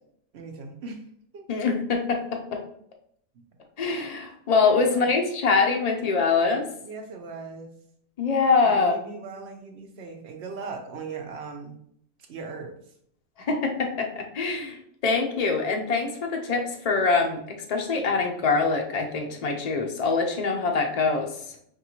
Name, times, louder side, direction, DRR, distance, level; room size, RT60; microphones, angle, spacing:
voice 1, 0.3-1.0 1.3-1.5 3.3-3.4 4.8-5.2 6.8-7.7 8.6-11.8 12.3-12.8, right 4 dB, 60° right, 3 dB, 0.7 m, -39 dB
voice 2, 1.5-2.6 3.8-6.7 8.2-9.0 13.4-21.6, left 4 dB, 70° left, 2 dB, 0.3 m, -24 dB
5.3 x 2.5 x 2.8 m, 0.68 s
omnidirectional pair, 1.5 m